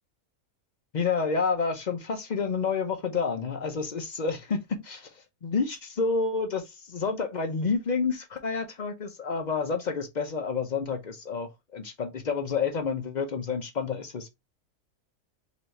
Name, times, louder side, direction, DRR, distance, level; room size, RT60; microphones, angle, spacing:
voice 1, 0.9-5.1 5.4-14.3, left 5 dB, 60° left, 0.4 m, -29 dB
4.0 x 2.8 x 3.1 m
omnidirectional pair, 1.6 m